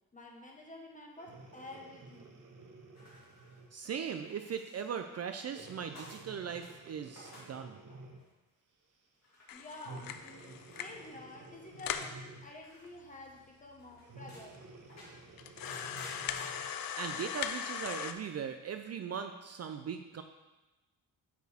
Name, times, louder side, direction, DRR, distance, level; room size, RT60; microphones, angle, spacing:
voice 1, 0.1-2.4 9.5-14.6, left 2 dB, 20° left, -1 dB, 1.3 m, -50 dB
Breathing, 1.2-3.8 4.4-4.6 5.5-8.4 9.8-12.6 14.0-16.8 17.4-17.5, right 3 dB, 60° right, 1.1 m, -52 dB
sound 1, 3.0-3.9 4.3-6.6 7.0-7.6 7.9-8.3 9.2-9.7 10.7-11.4 12.6-13.0 13.4-13.5 13.8-14.5 14.9-16.5, left 1 dB, 45° left, 2.4 m, -54 dB
voice 2, 3.7-7.8 17.0-20.2, right 7 dB, 45° right, 7 dB, 0.5 m, -39 dB
sound 2, 9.5-11.1 11.4-11.5 11.8-12.2 12.8-12.9 13.2-13.3 14.0-14.1 14.5-14.6 15.4-18.1, left 9 dB, 75° left, 0.5 m, -39 dB
8.9 x 4.6 x 3.5 m, 1.1 s
cardioid pair, 100°, 35 cm